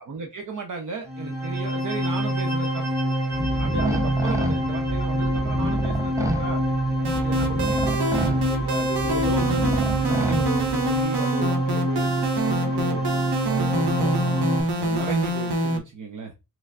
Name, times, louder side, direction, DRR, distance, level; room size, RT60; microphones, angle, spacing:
voice 1, 0.0-2.9 3.6-6.6 7.1-9.7 10.0-13.0 13.5-14.4 14.8-16.3, right 4 dB, 50° right, 0.8 m, -35 dB
sound 1, 1.0-14.6, equal, 25° right, 2.0 m, -26 dB
sound 2, 3.3-11.0, right 1 dB, 10° right, 0.7 m, -30 dB
sound 3, 7.0-15.8, right 1 dB, 80° right, 1.6 m, -26 dB
6.0 x 3.3 x 2.5 m
wide cardioid pair, 130°, 39 cm